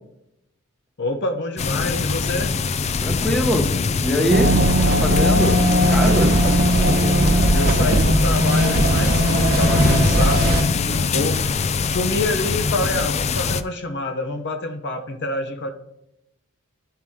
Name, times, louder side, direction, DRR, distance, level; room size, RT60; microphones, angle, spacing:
voice 1, 1.0-2.6 6.7-7.3 7.5-11.5 11.9-15.7, left 2 dB, 55° left, 5 dB, 0.8 m, -27 dB
sound 1, 1.6-13.6, left 4 dB, 30° left, 0.3 m, -23 dB
voice 2, 3.0-3.7 4.0-4.6 4.9-6.3, equal, ahead, 3 dB, 0.9 m, -23 dB
sound 2, 4.3-10.6, equal, 50° right, 0.9 m, -18 dB
11.5 x 4.6 x 3.6 m, 0.85 s
head